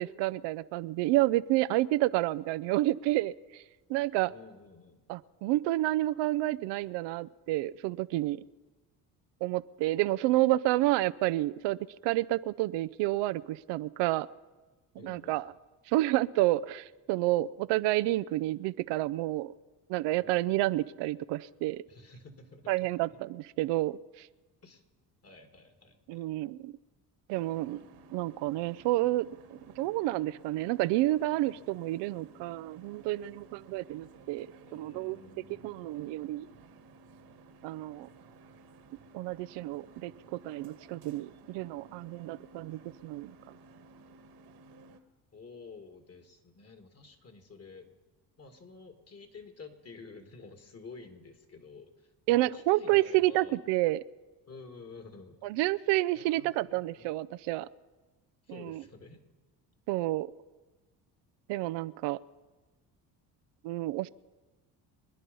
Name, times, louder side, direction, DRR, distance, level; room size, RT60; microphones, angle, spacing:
voice 1, 0.0-3.6 3.9-4.3 5.1-8.4 9.4-11.8 12.0-14.3 15.0-15.5 15.9-19.5 19.9-21.8 22.7-24.3 26.1-26.7 27.3-27.8 28.1-29.3 29.8-34.5 34.7-35.2 35.6-36.5 37.6-38.1 39.1-43.3 52.3-54.0 55.4-57.7 58.5-58.8 59.9-60.3 61.5-62.2 63.6-64.1, right 17 dB, 80° right, 15 dB, 0.6 m, -29 dB
voice 2, 4.2-5.0 15.0-15.4 20.2-20.4 21.9-23.2 24.6-24.8 25.2-26.3 34.7-36.2 45.3-47.9 48.4-53.6 54.5-55.5 56.1-57.1 58.4-59.2, left 4 dB, 35° left, 6 dB, 2.4 m, -51 dB
sound 1, 27.3-45.0, right 3 dB, 65° right, 1.6 m, -56 dB
25.0 x 10.0 x 5.5 m, 1.2 s
supercardioid pair, 80°, 42 cm